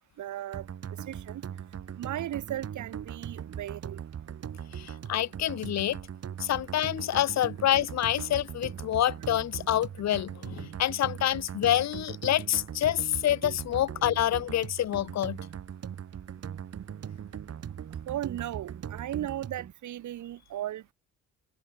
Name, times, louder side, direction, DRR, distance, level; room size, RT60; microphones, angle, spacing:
voice 1, 0.2-1.4 2.0-4.0 18.1-20.9, right 12 dB, 75° right, 2.7 m, -36 dB
sound 1, 0.5-19.7, right 9 dB, 55° right, 2.8 m, -40 dB
voice 2, 4.7-6.0 6.4-15.4, left 12 dB, 60° left, 0.9 m, -27 dB
cardioid pair, 90°, 30 cm